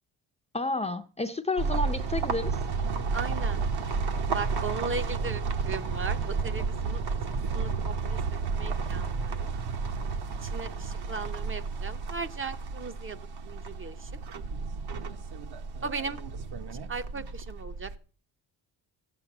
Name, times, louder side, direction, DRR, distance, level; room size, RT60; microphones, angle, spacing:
voice 1, 0.5-2.6, left 2 dB, 15° left, 0.5 m, -30 dB
sound 1, 1.6-18.0, right 4 dB, 65° right, 1.2 m, -32 dB
voice 2, 3.1-3.6 4.3-7.0 7.5-9.5 10.4-14.1 15.8-16.2 16.9-17.9, right 4 dB, 30° right, 0.7 m, -37 dB
14.5 x 8.1 x 5.9 m
cardioid pair, 135°, 42 cm